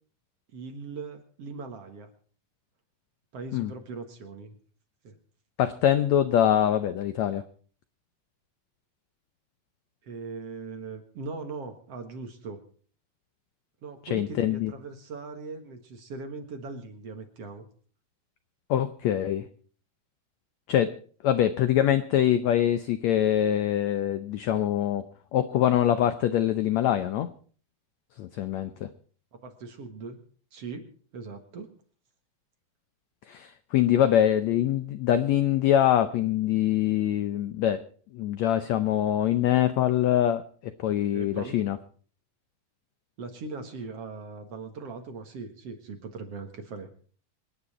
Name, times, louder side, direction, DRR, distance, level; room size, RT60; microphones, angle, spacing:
voice 1, 0.5-2.1 3.3-4.6 5.0-5.2 10.0-12.6 13.8-17.6 29.3-30.2 30.5-31.7 41.1-41.6 43.2-46.9, right 4 dB, 50° right, 6 dB, 2.2 m, -40 dB
voice 2, 5.6-7.4 14.1-14.7 18.7-19.4 20.7-20.9 21.2-25.0 25.3-27.3 28.2-28.9 33.3-37.8 38.1-40.4 40.8-41.8, left 11 dB, 80° left, 11 dB, 1.6 m, -24 dB
26.5 x 9.9 x 4.2 m, 0.43 s
omnidirectional pair, 4.1 m